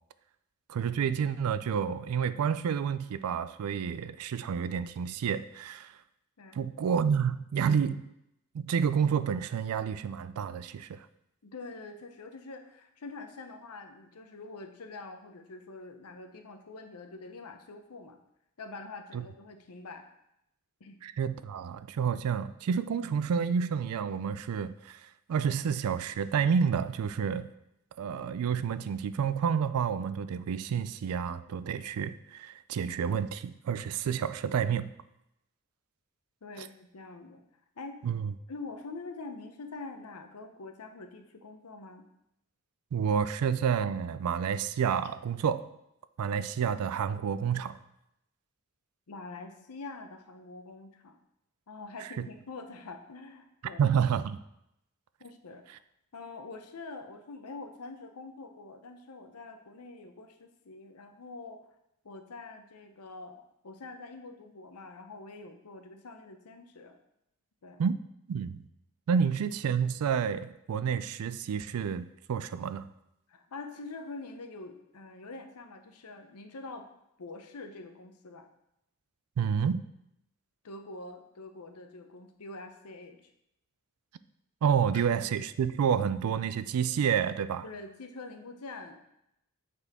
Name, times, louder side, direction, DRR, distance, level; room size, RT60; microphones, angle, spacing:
voice 1, 0.7-5.9 6.5-8.1 8.5-11.1 19.1-19.2 21.0-27.5 28.0-34.9 36.6-36.7 38.0-38.3 42.9-45.6 46.2-47.8 53.8-54.4 67.8-67.9 68.3-68.6 69.1-72.9 79.4-79.8 84.6-87.6, right 7 dB, 75° right, 14 dB, 0.3 m, -29 dB
voice 2, 11.4-18.2 18.6-20.0 20.8-21.0 36.4-37.4 37.8-38.0 38.5-42.1 49.1-51.2 51.7-53.9 55.2-55.8 56.1-61.7 62.0-67.0 67.6-67.8 69.1-69.2 73.3-76.9 77.2-78.5 80.6-83.2 87.6-89.0, left 3 dB, 85° left, 6 dB, 0.7 m, -45 dB
8.1 x 4.2 x 3.6 m, 0.82 s
head